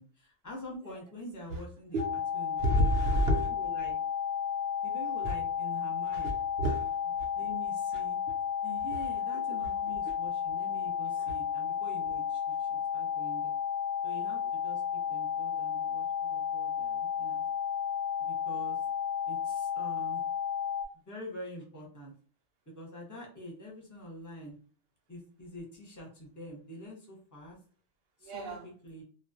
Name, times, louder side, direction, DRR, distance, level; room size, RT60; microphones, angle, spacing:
voice 1, 0.0-2.0 2.3-2.7 3.5-3.9 4.8-6.3 7.1-8.2 8.6-13.5 14.0-17.4 18.2-18.8 19.3-20.2 21.1-22.1 22.7-24.6 25.1-27.6 28.2-29.0, equal, 15° left, -2 dB, 0.7 m, -46 dB
sound 1, 2.0-20.9, left 8 dB, 55° left, 0.7 m, -32 dB
voice 2, 2.6-3.5 6.1-6.8 7.2-7.3 10.1-10.2 28.2-28.7, equal, 60° right, 3 dB, 0.7 m, -29 dB
2.3 x 2.1 x 2.6 m, 0.41 s
omnidirectional pair, 1.3 m